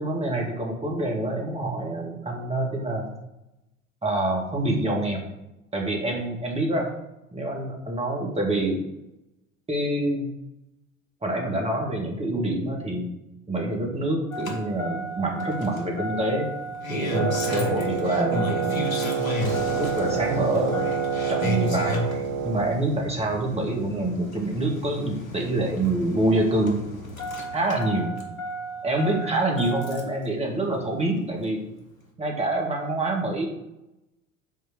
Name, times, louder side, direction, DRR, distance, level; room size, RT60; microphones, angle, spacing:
voice 1, 0.0-3.1 4.0-5.3 5.7-6.9 7.3-8.8 9.7-10.3 11.2-13.1 13.5-16.5 16.9-19.2 19.6-20.8 21.3-26.8 27.5-28.1 28.8-31.6 32.2-33.5, right 1 dB, 15° right, 0 dB, 2.2 m, -26 dB
Engine starting, 14.3-30.2 31.5-31.6, left 1 dB, 80° left, 1.4 m, -33 dB
Wind instrument woodwind instrument, 17.1-22.8, right 7 dB, 45° right, 0.4 m, -28 dB
6.1 x 4.4 x 6.2 m, 0.92 s
figure-of-eight pair, 70°, 41 cm